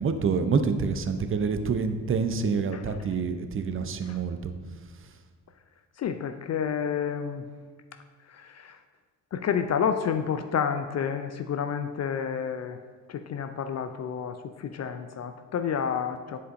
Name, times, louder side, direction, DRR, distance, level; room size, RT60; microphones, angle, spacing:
voice 1, 0.0-4.5, right 5 dB, 30° right, 8 dB, 0.6 m, -27 dB
voice 2, 6.0-7.4 8.3-8.8 9.3-12.8 13.1-16.4, left 7 dB, 35° left, 9 dB, 0.4 m, -30 dB
9.8 x 5.0 x 2.6 m, 1.5 s
hypercardioid pair, 40°, 46 cm